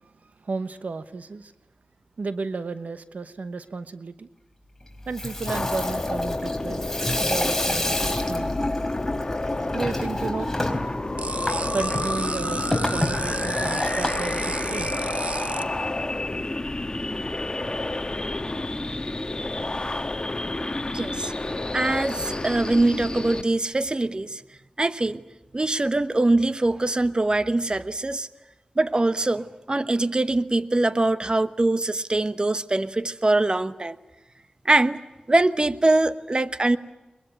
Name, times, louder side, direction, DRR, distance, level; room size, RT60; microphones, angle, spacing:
voice 1, 0.4-1.5 2.2-4.3 5.1-6.9 7.2-8.7 9.7-10.5 10.9-11.1 11.7-15.1 22.2-22.3, right 4 dB, 85° right, 12 dB, 1.0 m, -33 dB
Water tap faucet / Sink (filling or washing), 5.0-15.2, left 1 dB, 15° left, 4.3 m, -30 dB
sound 1, 5.4-23.4, left 2 dB, 35° left, 1.5 m, -29 dB
sound 2, 11.2-15.6, right 3 dB, 60° right, 0.9 m, -33 dB
voice 2, 20.9-21.3 21.7-24.4 24.8-25.2 25.5-28.3 28.8-34.0 34.6-35.0 35.3-36.8, right 2 dB, 35° right, 12 dB, 1.1 m, -23 dB
22.5 x 22.0 x 9.1 m, 1.1 s
wide cardioid pair, 55°, 3 cm